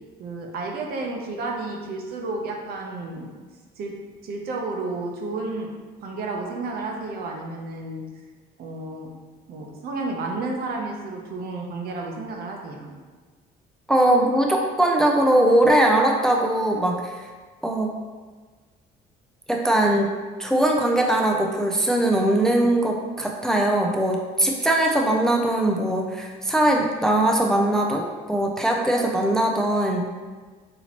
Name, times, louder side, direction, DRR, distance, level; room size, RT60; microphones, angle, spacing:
voice 1, 0.2-3.3 3.8-4.0 4.2-5.7 6.0-8.0 8.6-9.1 9.5-12.9, right 3 dB, 65° right, 1 dB, 0.7 m, -31 dB
voice 2, 13.9-17.2 17.6-17.9 19.5-20.1 20.4-30.1, right 1 dB, 5° left, 0 dB, 0.3 m, -21 dB
4.2 x 2.9 x 2.9 m, 1.4 s
cardioid pair, 110°, 17 cm